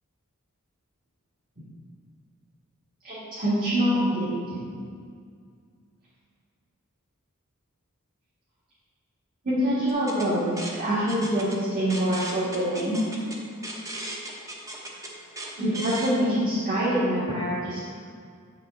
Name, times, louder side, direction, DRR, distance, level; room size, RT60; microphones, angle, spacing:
voice 1, 3.0-4.6 9.4-13.0 15.6-17.9, equal, 40° right, -11 dB, 2.0 m, -25 dB
sound 1, 9.9-16.1, right 1 dB, 15° right, 0.8 m, -38 dB
8.4 x 5.9 x 3.8 m, 2.1 s
head